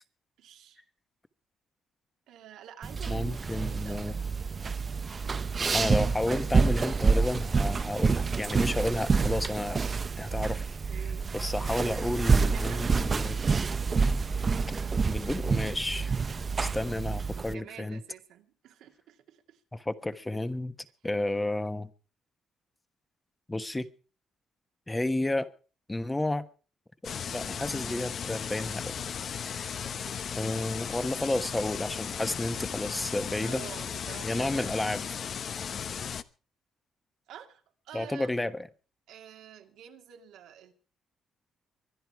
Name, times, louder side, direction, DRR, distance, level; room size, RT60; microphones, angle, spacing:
voice 1, 0.4-0.8 2.3-5.5 10.9-11.3 12.3-12.9 17.4-19.6 29.9-30.5 33.4-34.7 37.3-38.4 39.1-40.7, right 10 dB, 85° right, 4 dB, 2.3 m, -49 dB
sound 1, 2.8-17.5, right 4 dB, 35° right, 0.7 m, -28 dB
voice 2, 3.1-4.1 5.7-9.8 10.2-10.6 11.3-13.4 15.0-16.1 16.6-18.0 19.7-20.7 21.0-21.9 23.5-23.9 24.9-25.5 25.9-26.4 27.3-28.9 29.4-29.7 30.4-33.6 34.2-35.0 37.9-38.7, left 1 dB, 15° left, 10 dB, 1.2 m, -31 dB
sound 2, 27.0-36.2, left 7 dB, 55° left, 0.9 m, -36 dB
24.0 x 10.0 x 4.7 m, 0.38 s
cardioid pair, 90°, 0 cm